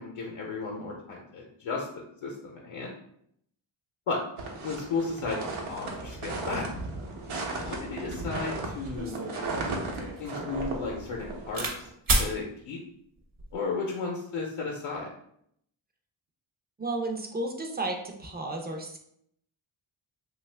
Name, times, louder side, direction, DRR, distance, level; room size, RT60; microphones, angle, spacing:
voice 1, 0.0-2.9 4.1-4.2 4.6-6.7 7.5-9.2 10.2-11.9 12.2-12.8 13.5-15.1, left 4 dB, 75° left, -2 dB, 0.7 m, -34 dB
sound 1, 4.4-11.9, right 2 dB, 75° right, 0.8 m, -36 dB
sound 2, 8.4-8.5 8.9-11.8 12.1-12.3 13.2-13.5, right 2 dB, 45° right, 0.7 m, -31 dB
voice 2, 16.8-19.0, right 2 dB, 20° right, 2 dB, 0.4 m, -33 dB
2.7 x 2.3 x 3.2 m, 0.70 s
wide cardioid pair, 115°, 50 cm